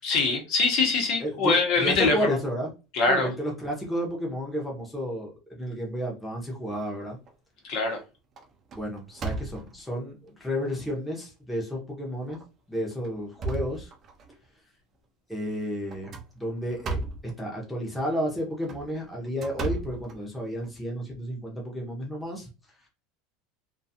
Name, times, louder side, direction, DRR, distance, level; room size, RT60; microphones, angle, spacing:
voice 1, 0.0-2.4 2.9-3.3 7.6-8.0, left 3 dB, 50° left, 0.9 m, -23 dB
voice 2, 1.2-2.7 3.1-7.2 8.7-12.4 12.7-13.9 15.3-22.5, equal, 5° left, 0.7 m, -32 dB
sound 1, 6.7-7.3 7.8-8.0 8.4-9.9 10.6-10.7 11.2-11.3 12.2-12.4 12.9-14.4 15.9-17.3 18.5-20.7, right 3 dB, 30° right, 0.4 m, -36 dB
2.5 x 2.3 x 2.7 m
supercardioid pair, 155°, 0 cm